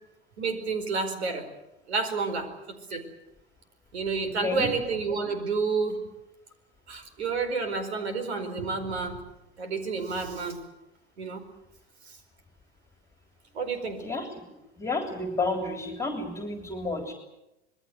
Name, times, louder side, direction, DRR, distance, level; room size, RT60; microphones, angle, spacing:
voice 1, 0.4-1.5 1.9-3.0 3.9-6.1 6.9-9.2 9.6-10.6 11.2-11.4 12.1-12.2 13.5-14.0, right 4 dB, 70° right, 9 dB, 4.8 m, -30 dB
voice 2, 4.2-4.7 14.0-14.3 14.8-17.1, left 3 dB, 10° left, 5 dB, 3.4 m, -31 dB
26.0 x 21.5 x 7.9 m, 0.93 s
figure-of-eight pair, 90°, 33 cm